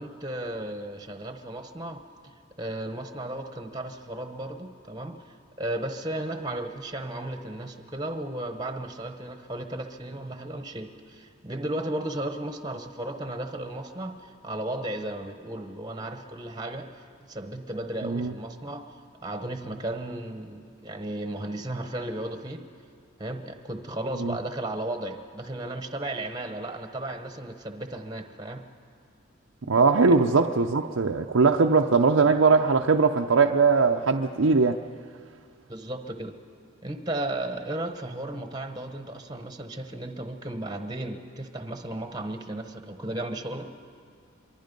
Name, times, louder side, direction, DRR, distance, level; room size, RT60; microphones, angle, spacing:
voice 1, 0.0-18.9 19.2-22.6 23.2-28.6 30.1-30.2 35.7-36.3 36.8-43.7, right 1 dB, 20° right, 1.0 m, -35 dB
voice 2, 18.0-18.3 24.2-24.3 29.7-34.8, right 4 dB, 90° right, 0.7 m, -20 dB
26.0 x 23.5 x 5.3 m
head